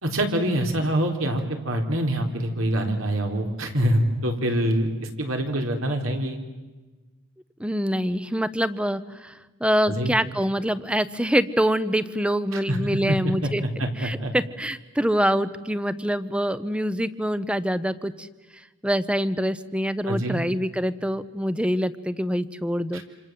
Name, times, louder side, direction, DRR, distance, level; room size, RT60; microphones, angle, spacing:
voice 1, 0.0-4.9 5.2-6.4 9.9-10.1 12.5-12.8 13.1-13.2 13.4-13.5 13.8-14.3 20.1-20.4 22.9-23.0, right 1 dB, 85° right, 3 dB, 4.0 m, -25 dB
voice 2, 7.6-13.6 14.0-18.3 18.8-23.0, equal, 5° right, 14 dB, 0.8 m, -25 dB
28.0 x 27.0 x 7.7 m, 1.2 s
head